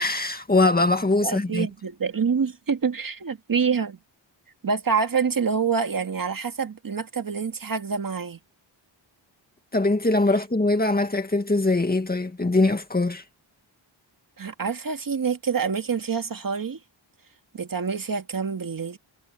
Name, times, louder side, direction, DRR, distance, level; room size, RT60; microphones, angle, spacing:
voice 1, 0.0-1.7 9.7-13.2, left 2 dB, 20° left, 2.0 m, -22 dB
voice 2, 1.2-4.0 4.6-8.4 14.4-16.8 17.5-19.0, right 6 dB, 45° right, 1.9 m, -26 dB
wide cardioid pair, 145°, 47 cm